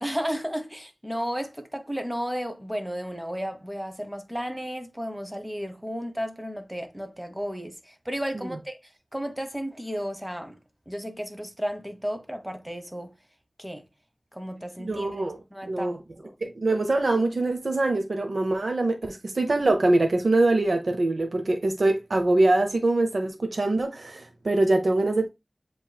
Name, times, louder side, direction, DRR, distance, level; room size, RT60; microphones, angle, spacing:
voice 1, 0.0-8.8 9.1-10.6 10.9-13.1 13.6-13.8 14.3-15.2 15.5-16.3, equal, 10° right, 1.2 m, -33 dB
voice 2, 14.8-16.0 16.4-25.3, right 2 dB, 85° right, 0.7 m, -24 dB
7.5 x 3.1 x 2.2 m
wide cardioid pair, 45°, 0 cm